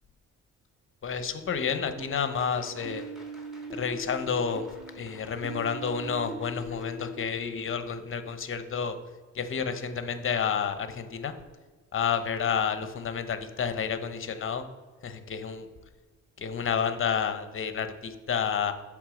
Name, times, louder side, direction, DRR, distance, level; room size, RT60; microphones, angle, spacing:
voice 1, 1.0-3.1 3.7-4.7 5.0-9.0 9.3-11.3 11.9-14.6 15.0-15.7 16.4-18.7, left 6 dB, 45° left, 9 dB, 0.8 m, -30 dB
sound 1, 2.0-7.1, equal, ahead, 1.7 m, -41 dB
8.1 x 3.6 x 6.2 m, 1.4 s
cardioid pair, 90°, 30 cm